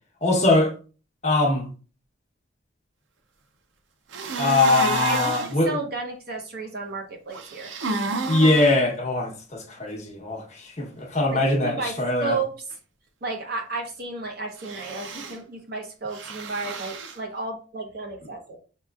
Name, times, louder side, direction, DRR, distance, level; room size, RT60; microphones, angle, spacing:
voice 1, 0.2-0.7 1.2-1.7 4.4-5.8 8.3-12.4, left 2 dB, 35° left, 1.0 m, -22 dB
sound 1, 4.1-5.5 7.3-8.7 14.6-15.4 16.1-17.2, right 3 dB, 80° right, 0.6 m, -30 dB
voice 2, 5.0-7.7 11.3-11.9 12.2-12.5 13.2-18.6, right 3 dB, 55° right, 1.0 m, -32 dB
5.6 x 2.9 x 2.4 m
head